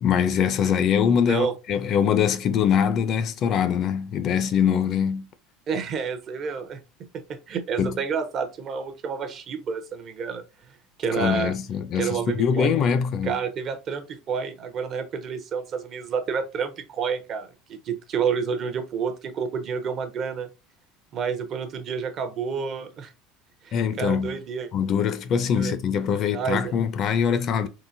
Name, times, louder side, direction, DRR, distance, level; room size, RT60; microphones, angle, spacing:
voice 1, 0.0-5.3 7.8-8.0 11.2-13.3 23.7-24.4 24.7-27.7, left 7 dB, 40° left, 0.4 m, -23 dB
voice 2, 5.7-6.8 7.1-10.4 11.0-11.5 11.9-12.7 13.2-20.5 21.1-23.1 23.6-24.7 25.6-25.7 26.1-26.7, right 6 dB, 35° right, 0.6 m, -29 dB
3.8 x 2.5 x 2.5 m
cardioid pair, 150°, 0 cm